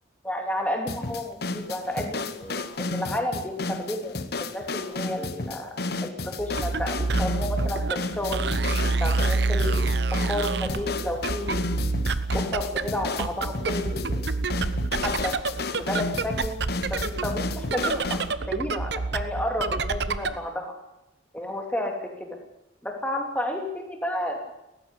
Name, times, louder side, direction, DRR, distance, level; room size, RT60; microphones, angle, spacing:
voice 1, 0.2-5.7 6.0-8.4 9.0-9.9 10.3-11.6 12.3-14.3 15.0-15.3 15.8-16.5 16.9-18.2 18.5-20.7 21.3-22.4 22.8-24.4, left 1 dB, 10° left, 2 dB, 3.0 m, -31 dB
sound 1, 0.9-18.3, left 3 dB, 55° left, 1.1 m, -32 dB
sound 2, 6.4-20.5, right 3 dB, 60° right, 0.9 m, -28 dB
17.0 x 15.0 x 10.0 m, 0.88 s
head